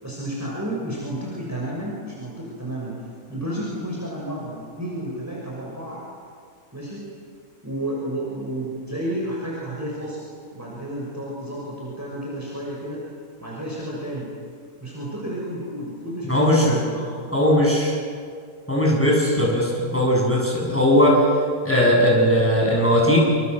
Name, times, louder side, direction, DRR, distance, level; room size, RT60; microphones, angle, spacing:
voice 1, 0.0-3.0 3.3-6.0 6.7-7.1 7.6-10.2 10.5-13.0 13.4-14.3 14.8-17.3, right 1 dB, 10° right, -4 dB, 6.2 m, -31 dB
voice 2, 16.3-16.8 17.3-18.0 18.7-21.2 21.6-23.2, equal, 5° left, -2 dB, 7.8 m, -18 dB
28.5 x 26.5 x 8.0 m, 2.1 s
omnidirectional pair, 1.8 m